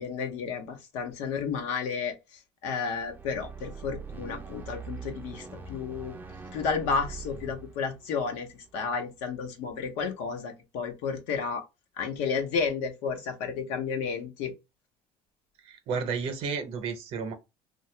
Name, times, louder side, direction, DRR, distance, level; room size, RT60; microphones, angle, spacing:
voice 1, 0.0-2.1 2.6-6.1 6.5-8.5 8.7-11.6 12.0-14.5, left 5 dB, 85° left, 0.9 m, -32 dB
sound 1, 2.9-9.3, right 5 dB, 15° right, 0.4 m, -43 dB
voice 2, 15.7-17.3, right 5 dB, 60° right, 0.7 m, -32 dB
2.8 x 2.2 x 3.2 m
cardioid pair, 135°, 11 cm